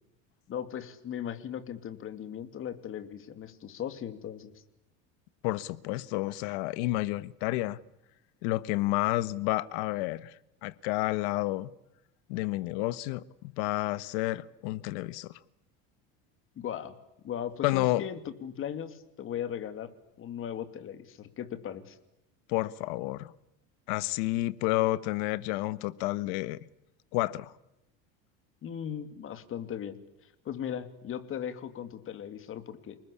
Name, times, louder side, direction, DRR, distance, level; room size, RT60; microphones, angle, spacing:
voice 1, 0.5-4.5 16.6-17.0 17.2-19.9 20.2-22.0 28.6-30.0 30.4-33.0, left 9 dB, 40° left, 2.9 m, -38 dB
voice 2, 5.4-7.8 8.4-10.3 10.6-11.7 12.3-15.4 17.6-18.0 22.5-23.3 23.9-26.6 27.1-27.5, left 18 dB, 80° left, 1.4 m, -30 dB
29.0 x 20.0 x 8.6 m
cardioid pair, 130°, 32 cm